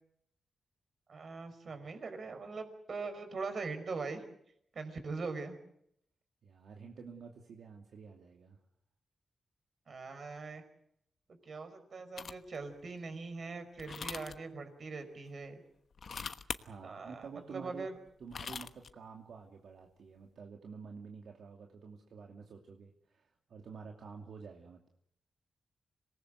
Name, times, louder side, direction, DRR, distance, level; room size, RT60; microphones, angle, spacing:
voice 1, 1.1-4.2 4.7-5.6 9.9-10.6 11.4-15.6 16.8-17.9, right 4 dB, 55° right, 8 dB, 5.2 m, -41 dB
voice 2, 6.4-8.6 16.6-17.9 18.2-24.9, right 5 dB, 75° right, 2 dB, 2.6 m, -50 dB
sound 1, 12.2-12.6 13.8-14.4 15.9-16.6 18.1-18.9, left 6 dB, 60° left, 1.2 m, -41 dB
26.5 x 19.0 x 8.0 m, 0.72 s
cardioid pair, 85°, 0 cm